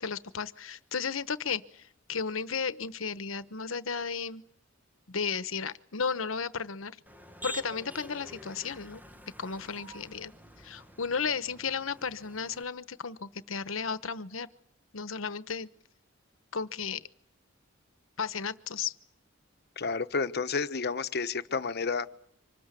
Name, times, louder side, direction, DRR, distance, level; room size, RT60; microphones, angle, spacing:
voice 1, 0.0-4.4 5.1-7.0 7.4-9.0 9.4-10.3 10.6-14.5 14.9-15.7 16.5-17.0 18.2-18.9, left 5 dB, 85° left, 14 dB, 1.1 m, -34 dB
Motor vehicle (road), 7.1-12.6, equal, 10° right, 1.2 m, -47 dB
voice 2, 19.8-22.1, left 4 dB, 55° left, 11 dB, 1.1 m, -30 dB
25.5 x 19.5 x 8.4 m, 0.67 s
head